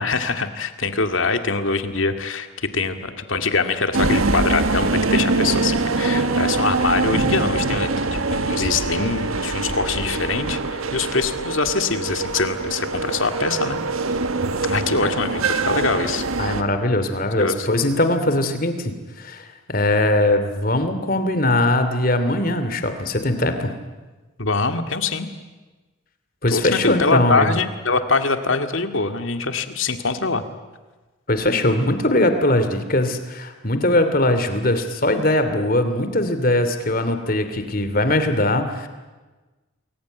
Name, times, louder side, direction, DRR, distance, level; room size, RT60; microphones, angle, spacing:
voice 1, 0.0-13.8 14.6-16.3 17.4-17.7 24.4-25.3 26.5-30.4, left 4 dB, 70° left, 7 dB, 2.2 m, -23 dB
sound 1, 3.9-16.6, right 3 dB, 90° right, 1.6 m, -23 dB
voice 2, 16.4-23.7 26.4-27.6 31.3-38.9, left 1 dB, 45° left, 9 dB, 2.8 m, -21 dB
28.5 x 21.5 x 9.3 m, 1.2 s
head